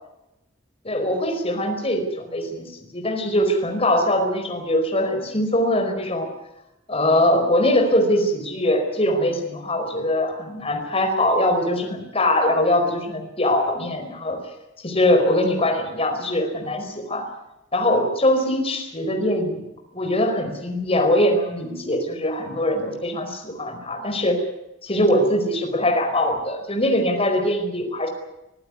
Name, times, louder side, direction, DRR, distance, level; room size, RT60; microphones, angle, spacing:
voice 1, 0.8-6.3 6.9-14.4 14.8-17.3 17.7-19.6 19.9-24.5 24.8-28.1, left 1 dB, 30° left, 4 dB, 4.7 m, -22 dB
24.0 x 15.5 x 9.7 m, 0.92 s
head